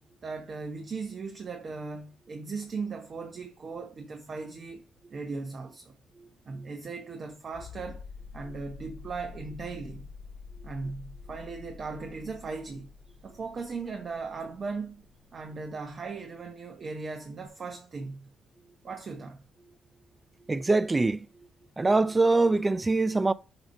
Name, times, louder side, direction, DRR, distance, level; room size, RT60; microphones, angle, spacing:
voice 1, 0.2-5.9 6.5-8.0 8.3-10.1 10.6-12.9 13.2-15.0 15.3-18.3 18.8-19.4, right 4 dB, 45° right, 0.9 m, -38 dB
sound 1, 7.5-16.0 17.5-17.6, left 5 dB, 65° left, 1.6 m, -47 dB
voice 2, 20.5-21.2 21.8-23.3, right 3 dB, 20° right, 0.4 m, -23 dB
6.9 x 2.9 x 5.4 m
cardioid pair, 90°, 0 cm